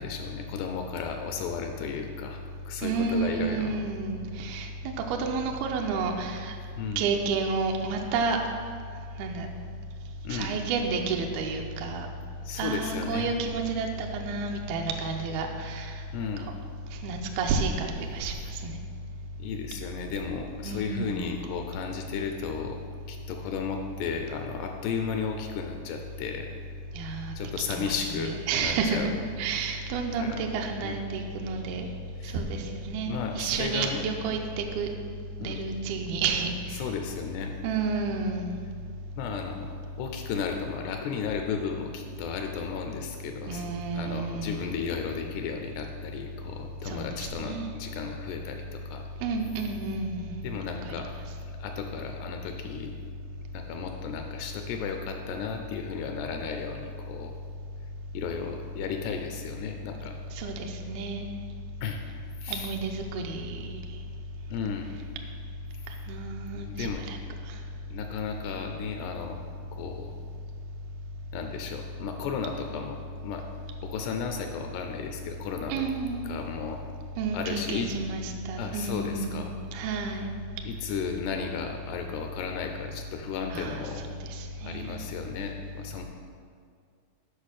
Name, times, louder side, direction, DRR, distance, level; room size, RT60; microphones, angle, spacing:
voice 1, 0.0-3.8 6.8-7.1 10.2-10.6 12.4-13.6 16.1-16.5 19.4-22.8 23.1-26.5 27.0-29.1 30.2-30.4 30.8-31.0 32.2-32.4 33.1-34.1 35.4-35.6 36.8-37.5 39.2-43.7 43.9-49.0 50.4-51.2 51.6-52.9 53.5-57.4 58.1-60.2 61.8-62.0 62.4-62.7 64.5-64.9 66.7-67.1 67.9-69.4 69.7-70.2 71.3-73.0 73.2-73.5 73.8-75.8 76.3-76.8 77.3-77.9 78.6-79.5 80.7-84.1 84.6-86.0, left 6 dB, 80° left, 4 dB, 2.5 m, -34 dB
voice 2, 2.8-6.5 7.0-8.4 9.2-9.5 10.3-12.1 12.6-15.9 17.0-18.7 20.6-21.3 26.9-27.3 27.7-29.1 29.4-31.9 32.3-34.9 35.4-36.8 37.6-38.7 43.5-44.8 46.9-47.7 49.2-50.4 50.9-51.0 60.4-61.3 62.5-63.8 66.1-67.2 75.7-76.3 77.2-80.3 83.5-83.8 84.3-85.0, right 4 dB, 85° right, 2 dB, 2.2 m, -30 dB
8.6 x 5.6 x 6.4 m, 2.2 s
omnidirectional pair, 5.1 m